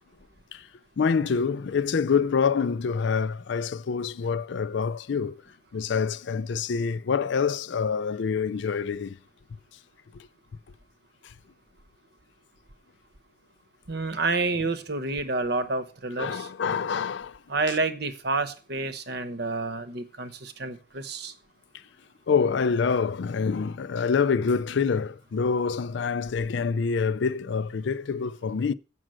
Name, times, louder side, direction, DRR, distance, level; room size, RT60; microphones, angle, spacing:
voice 1, 1.0-5.4 5.7-9.1 16.2-17.4 22.3-28.7, left 5 dB, 60° left, 0.4 m, -26 dB
voice 2, 13.9-16.5 17.5-21.3, right 3 dB, 50° right, 0.9 m, -29 dB
7.7 x 6.2 x 7.5 m
head